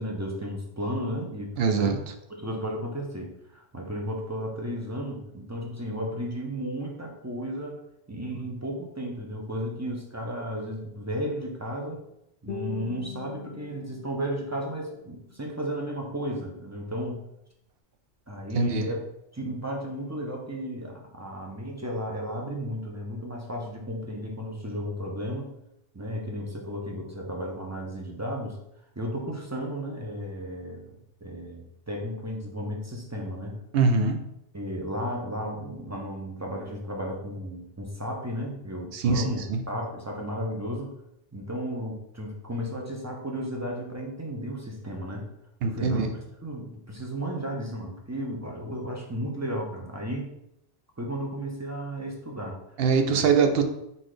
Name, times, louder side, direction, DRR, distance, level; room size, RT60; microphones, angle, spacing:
voice 1, 0.0-2.0 2.3-7.8 8.1-12.0 12.4-17.2 18.3-19.0 19.3-25.5 25.9-28.6 29.0-33.6 34.5-40.9 41.3-45.3 45.6-46.1 46.4-50.3 51.0-52.6 53.1-53.2, equal, 20° right, 0 dB, 0.5 m, -34 dB
voice 2, 1.6-2.0 18.5-18.9 33.7-34.2 38.9-39.6 45.6-46.1 52.8-53.6, right 5 dB, 65° right, 6 dB, 0.7 m, -23 dB
Guitar, 12.5-15.5, left 6 dB, 70° left, 0.8 m, -41 dB
4.0 x 3.8 x 3.2 m, 0.81 s
omnidirectional pair, 1.2 m